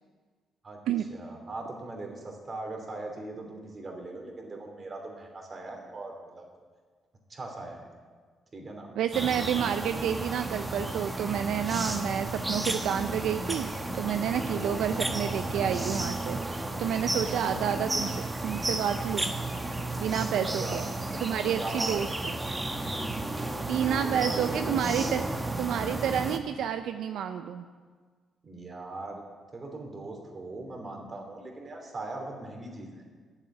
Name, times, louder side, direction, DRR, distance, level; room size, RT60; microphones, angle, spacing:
voice 1, 1.1-6.4 7.3-7.9 8.5-8.9 14.3-14.7 17.2-17.7 20.4-20.8 21.6-22.1 23.9-24.7 28.4-29.2 29.5-33.0, right 2 dB, 35° right, 1 dB, 2.9 m, -40 dB
voice 2, 9.0-19.3 20.0-20.9 21.2-22.3 23.7-25.2 25.6-27.6, right 9 dB, 80° right, 8 dB, 0.5 m, -30 dB
sound 1, 9.1-26.4, right 2 dB, 15° right, 1.1 m, -33 dB
10.0 x 7.4 x 9.0 m, 1.5 s
cardioid pair, 90°, 0 cm